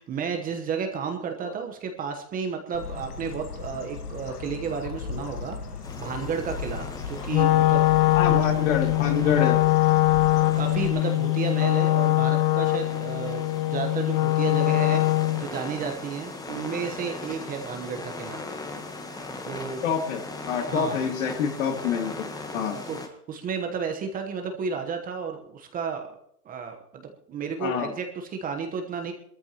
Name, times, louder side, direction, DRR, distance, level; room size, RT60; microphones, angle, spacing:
voice 1, 0.0-8.4 9.2-9.4 10.5-18.4 19.4-19.8 20.7-21.0 22.5-26.2 26.4-29.1, right 6 dB, 20° right, 4 dB, 1.1 m, -32 dB
Bird, 2.7-10.9, left 6 dB, 80° left, 1.6 m, -37 dB
sound 1, 5.8-23.1, left 3 dB, 10° left, 1.2 m, -39 dB
Wind instrument woodwind instrument, 7.3-15.5, left 18 dB, 35° left, 0.5 m, -22 dB
voice 2, 8.1-9.6 19.8-20.2 20.5-22.3 22.5-22.7 27.6-27.9, left 7 dB, 55° left, 3 dB, 2.9 m, -26 dB
21.0 x 13.5 x 3.0 m, 0.72 s
hypercardioid pair, 130°, 45 cm